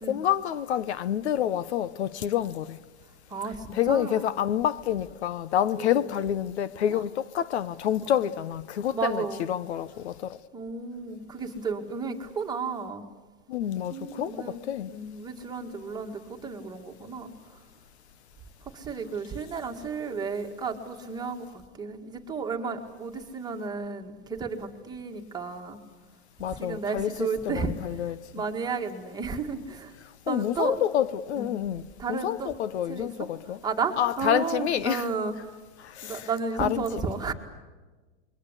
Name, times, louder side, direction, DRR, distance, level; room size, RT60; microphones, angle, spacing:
voice 1, 0.0-2.8 3.7-10.4 13.5-14.9 26.4-28.2 30.3-31.8 32.1-33.6 34.0-35.1 35.8-36.3 36.6-36.9, left 10 dB, 75° left, 1.0 m, -28 dB
voice 2, 3.3-4.3 5.8-5.9 6.9-7.0 8.9-9.4 10.5-13.0 13.9-14.6 14.9-17.3 18.7-25.8 26.6-27.7 28.1-29.9 30.3-30.8 31.4-31.5 32.0-32.5 32.9-33.1 33.6-35.4 36.0-37.3, right 5 dB, 10° right, 2.0 m, -33 dB
28.0 x 22.5 x 8.2 m
supercardioid pair, 150°, 33 cm